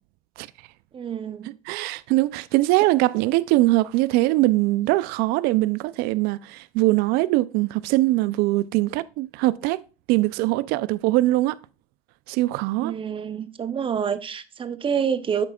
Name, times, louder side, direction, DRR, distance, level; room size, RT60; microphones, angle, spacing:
voice 1, 0.9-1.5 12.8-15.5, right 7 dB, 30° right, 0.8 m, -27 dB
voice 2, 1.7-9.8 10.1-11.6 12.3-12.9, right 18 dB, 60° right, 0.5 m, -22 dB
8.2 x 7.6 x 2.4 m
hypercardioid pair, 80°, 18 cm